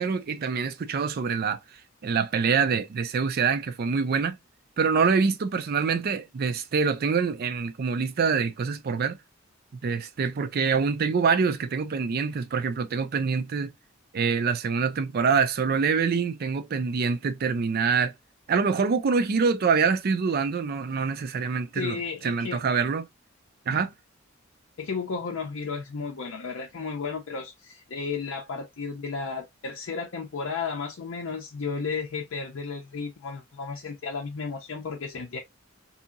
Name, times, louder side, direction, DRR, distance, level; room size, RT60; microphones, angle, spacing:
voice 1, 0.0-1.6 2.0-4.4 4.8-9.2 9.8-13.7 14.1-18.1 18.5-22.0 22.2-23.1 23.7-23.9, right 5 dB, 50° right, 0.4 m, -25 dB
voice 2, 21.7-22.6 23.7-23.8 24.8-35.4, left 5 dB, 70° left, 0.5 m, -33 dB
2.8 x 2.7 x 2.4 m
head